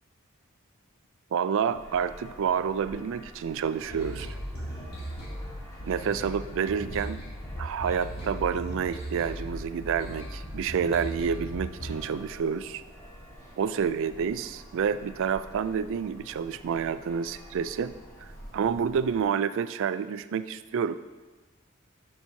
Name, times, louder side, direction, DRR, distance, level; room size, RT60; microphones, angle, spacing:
voice 1, 1.3-4.4 5.8-7.2 7.6-12.8 13.6-21.0, right 7 dB, 65° right, 13 dB, 0.3 m, -29 dB
sound 1, 1.7-19.3, equal, 15° left, 1.5 m, -48 dB
sound 2, 3.9-12.0, equal, 50° left, 2.7 m, -38 dB
11.5 x 6.0 x 2.8 m, 1.3 s
head